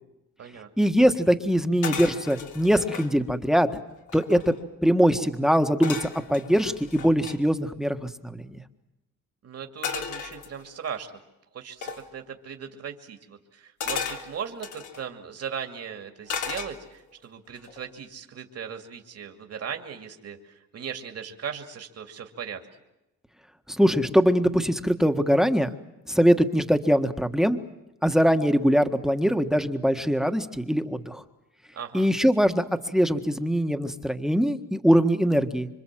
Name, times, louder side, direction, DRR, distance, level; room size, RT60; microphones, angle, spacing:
voice 1, 0.8-3.7 4.1-4.5 4.8-8.6 23.7-25.7 26.1-27.6 28.0-31.2 31.9-35.7, equal, ahead, 8 dB, 1.6 m, -22 dB
sound 1, 1.8-3.1 3.7-3.8 4.0-4.6 5.8-7.4 9.8-10.9 11.8-12.1 13.8-15.0 16.3-17.1 17.6-17.9, left 6 dB, 80° left, 3.3 m, -35 dB
voice 2, 9.4-11.1 11.5-22.6 31.7-32.1, right 7 dB, 55° right, 5 dB, 2.7 m, -38 dB
27.0 x 25.0 x 7.7 m, 0.93 s
cardioid pair, 90°, 30 cm